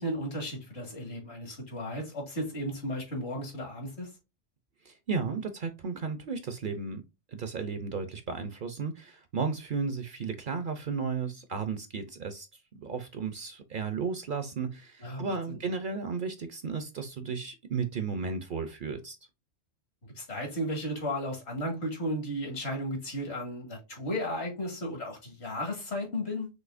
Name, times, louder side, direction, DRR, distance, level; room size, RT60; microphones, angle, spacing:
voice 1, 0.0-4.1 15.0-15.6 20.2-26.5, equal, 65° left, 2.1 m, -34 dB
voice 2, 4.8-7.0 7.3-12.5 12.8-19.2, right 5 dB, 55° right, 0.7 m, -34 dB
6.2 x 2.7 x 2.5 m
omnidirectional pair, 1.2 m